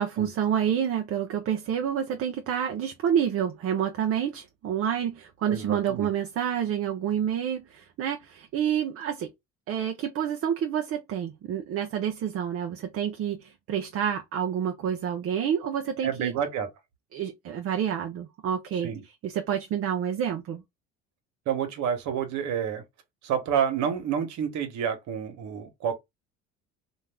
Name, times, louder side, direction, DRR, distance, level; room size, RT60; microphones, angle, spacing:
voice 1, 0.0-9.3 9.7-16.3 17.1-20.6, right 9 dB, 45° right, 0.6 m, -28 dB
voice 2, 5.5-6.1 16.0-16.7 18.8-19.0 21.5-22.8 23.2-25.9, right 8 dB, 60° right, 1.1 m, -29 dB
2.5 x 2.3 x 3.3 m
supercardioid pair, 80°, 32 cm